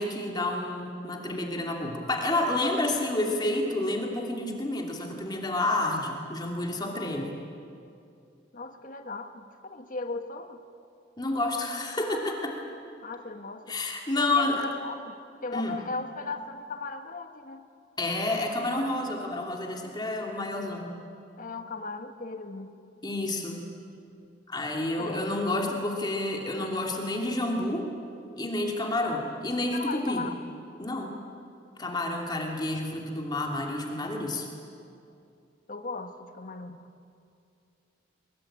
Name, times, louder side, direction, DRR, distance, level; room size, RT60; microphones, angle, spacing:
voice 1, 0.0-7.4 11.2-12.5 13.7-14.6 15.5-15.8 18.0-21.0 23.0-23.7 24.5-27.9 28.4-30.2 30.8-31.1 31.8-34.5, left 2 dB, 20° left, 0 dB, 2.7 m, -29 dB
voice 2, 6.8-7.4 8.5-10.6 13.0-13.8 14.1-15.2 15.4-17.7 21.4-22.7 24.9-25.3 29.7-30.4 35.7-36.9, left 3 dB, 45° left, 7 dB, 1.5 m, -37 dB
23.0 x 23.0 x 8.7 m, 2.5 s
head